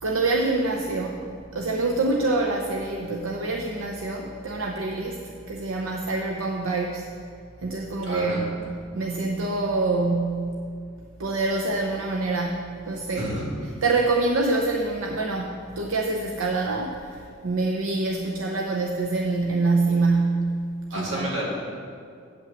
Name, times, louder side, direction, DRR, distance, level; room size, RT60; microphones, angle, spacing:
voice 1, 0.0-7.0 7.6-10.7 11.2-13.3 13.8-20.7 20.9-21.3, right 3 dB, 85° right, 1 dB, 0.7 m, -26 dB
voice 2, 8.0-8.4 13.1-13.5 20.9-21.5, equal, 65° right, -5 dB, 2.6 m, -30 dB
8.7 x 5.8 x 7.0 m, 2.2 s
head